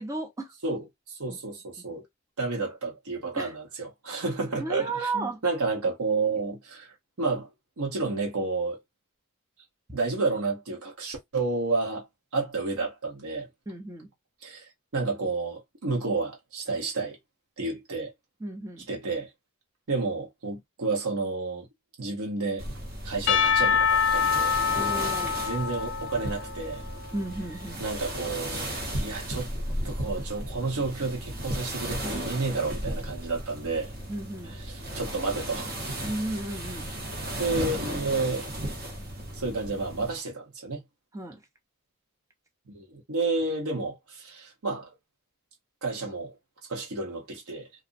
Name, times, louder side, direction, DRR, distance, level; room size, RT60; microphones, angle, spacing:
voice 1, 0.0-0.5 1.3-1.4 1.9-2.0 3.3-3.5 4.6-5.4 13.7-14.1 18.4-18.9 24.7-25.4 27.1-27.8 34.1-34.6 36.0-36.9 41.1-41.4, right 2 dB, 15° right, 0.4 m, -34 dB
voice 2, 0.6-2.0 2.4-7.5 7.8-8.8 9.9-12.1 12.3-13.5 14.4-17.2 17.6-18.1 18.9-19.3 19.9-21.7 22.0-22.6 23.0-24.6 25.4-26.8 27.8-29.5 29.8-33.9 34.5-36.0 37.4-38.5 39.3-40.8 42.7-44.9 45.8-46.3 46.7-47.7, right 3 dB, 80° right, 0.8 m, -31 dB
sound 1, 22.6-40.2, right 1 dB, 45° right, 0.8 m, -35 dB
Percussion / Church bell, 23.3-27.4, left 7 dB, 55° left, 0.4 m, -26 dB
2.5 x 2.0 x 2.5 m
head